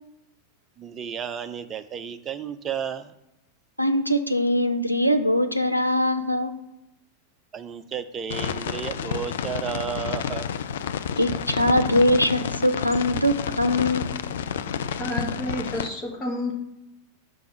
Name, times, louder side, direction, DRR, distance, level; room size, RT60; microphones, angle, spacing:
voice 1, 0.8-3.1 7.5-10.5 11.1-11.6, right 7 dB, 25° right, 9 dB, 0.5 m, -33 dB
voice 2, 3.8-6.5 11.2-14.1, left 1 dB, 90° right, 8 dB, 0.5 m, -22 dB
sound 1, 8.3-15.9, left 8 dB, 60° left, 0.4 m, -30 dB
voice 3, 15.0-16.5, left 1 dB, 25° left, 0 dB, 1.8 m, -30 dB
6.0 x 3.5 x 5.6 m, 0.89 s
figure-of-eight pair, 90°, 0 cm